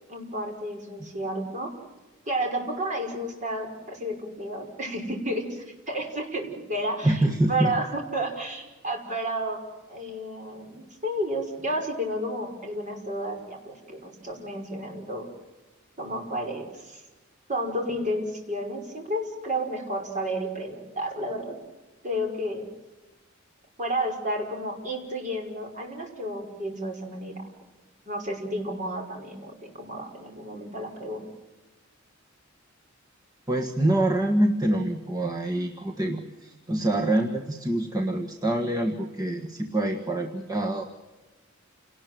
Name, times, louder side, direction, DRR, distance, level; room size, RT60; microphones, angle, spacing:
voice 1, 0.1-1.7 2.3-7.2 7.5-9.6 9.9-15.3 16.0-17.0 17.5-21.6 22.0-22.7 23.8-27.5 28.1-31.2, right 1 dB, 40° right, 2 dB, 5.5 m, -31 dB
voice 2, 7.0-7.7 33.5-40.9, right 1 dB, 20° right, 2 dB, 1.6 m, -25 dB
29.0 x 19.5 x 7.7 m, 1.2 s
head